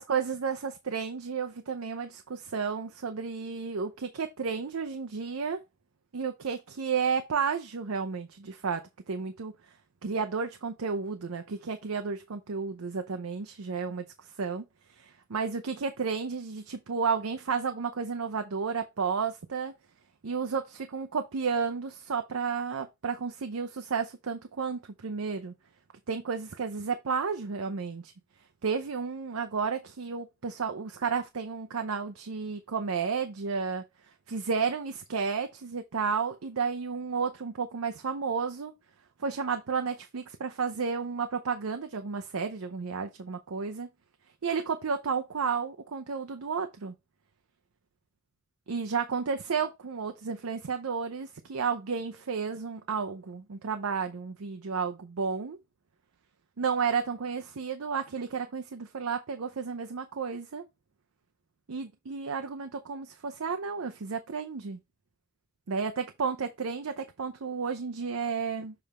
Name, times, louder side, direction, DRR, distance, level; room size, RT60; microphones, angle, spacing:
voice 1, 0.0-5.6 6.1-8.8 9.1-9.5 10.0-14.0 14.4-14.6 15.0-19.7 20.2-25.5 26.1-28.1 28.6-33.8 34.3-38.7 39.2-43.9 44.4-46.9 48.7-55.6 56.6-60.6 61.7-64.8 65.7-68.7, right 5 dB, 85° right, 0.6 m, -32 dB
7.0 x 3.4 x 4.2 m
head